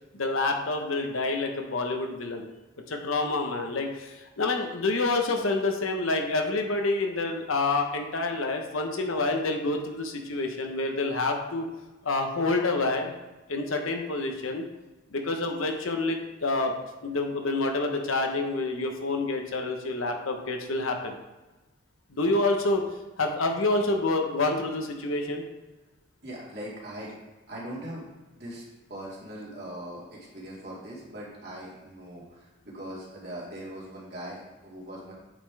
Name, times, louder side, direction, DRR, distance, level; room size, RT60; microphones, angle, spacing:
voice 1, 0.1-2.5 2.9-11.7 12.0-13.1 13.5-14.7 15.1-16.7 17.0-21.2 22.1-22.8 23.2-25.4, left 2 dB, 80° left, 3 dB, 1.0 m, -28 dB
voice 2, 26.2-27.2 27.5-28.1 28.3-35.1, right 1 dB, 50° right, -6 dB, 2.3 m, -40 dB
8.6 x 5.4 x 3.4 m, 1.1 s
head